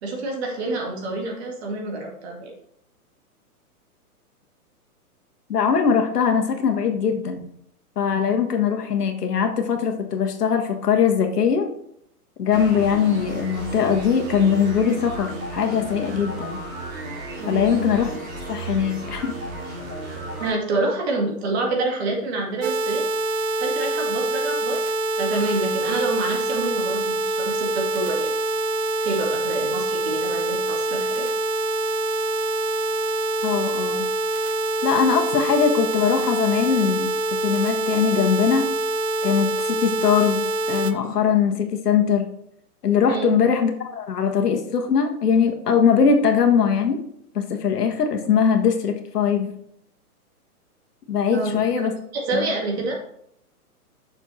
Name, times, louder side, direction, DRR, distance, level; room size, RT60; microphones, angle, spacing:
voice 1, 0.0-2.5 17.4-17.8 20.4-23.1 23.6-24.9 25.2-28.3 29.0-31.3 43.1-43.3 51.3-51.9 52.1-53.0, right 2 dB, 45° right, 0 dB, 2.2 m, -27 dB
voice 2, 5.5-7.5 8.0-11.7 12.4-16.6 17.5-18.1 18.5-19.3 33.4-34.0 34.8-37.1 37.4-38.7 39.2-40.4 40.7-42.3 42.8-47.0 47.3-49.5 51.1-51.9 52.3-52.5, left 7 dB, 85° left, 4 dB, 1.5 m, -21 dB
sound 1, 12.5-20.5, right 2 dB, 25° right, 2.7 m, -33 dB
sound 2, 22.6-40.9, right 2 dB, 65° right, 0.9 m, -25 dB
6.7 x 4.8 x 4.3 m, 0.72 s
hypercardioid pair, 155°, 46 cm